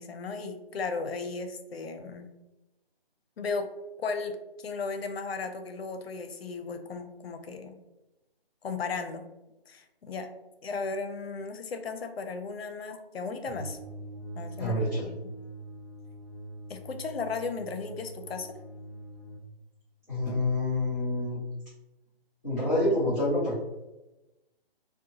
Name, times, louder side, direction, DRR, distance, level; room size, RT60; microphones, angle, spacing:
voice 1, 0.0-2.3 3.4-3.7 4.0-7.8 8.6-9.2 9.7-10.3 10.6-13.8 14.4-15.2 16.7-18.6, left 4 dB, 75° left, 7 dB, 0.5 m, -35 dB
sound 1, 13.4-19.4, right 2 dB, 40° right, 0.7 m, -43 dB
voice 2, 14.6-15.1 20.1-21.4 22.4-23.6, left 1 dB, 20° left, -13 dB, 0.6 m, -27 dB
2.6 x 2.1 x 2.7 m, 0.99 s
hypercardioid pair, 180°, 30 cm